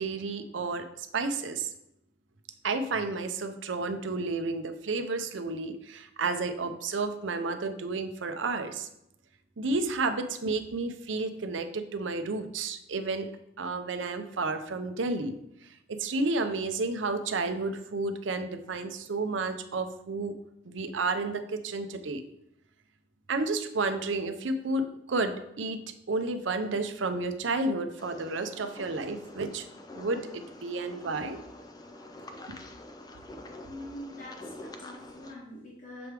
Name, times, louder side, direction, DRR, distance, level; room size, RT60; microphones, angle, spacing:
voice 1, 0.0-1.7 2.6-8.9 9.6-13.3 13.6-15.3 15.9-20.4 20.7-22.2 23.3-25.8 26.1-29.7 29.9-31.4, right 3 dB, 80° right, 9 dB, 0.6 m, -31 dB
sound 1, 28.0-35.3, left 1 dB, 20° left, 0.4 m, -46 dB
voice 2, 33.6-36.1, left 1 dB, 40° left, -5 dB, 1.1 m, -44 dB
6.9 x 3.4 x 4.6 m, 0.80 s
head